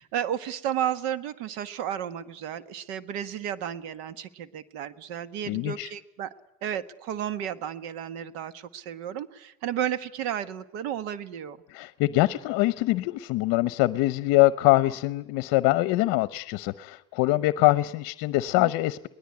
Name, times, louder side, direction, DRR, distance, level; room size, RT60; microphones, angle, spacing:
voice 1, 0.0-6.3 6.6-11.6 18.6-18.7, right 10 dB, 65° right, 13 dB, 1.5 m, -33 dB
voice 2, 5.5-5.9 11.7-19.1, left 18 dB, 50° left, 16 dB, 0.9 m, -24 dB
22.5 x 19.5 x 9.8 m, 0.92 s
cardioid pair, 160°, 46 cm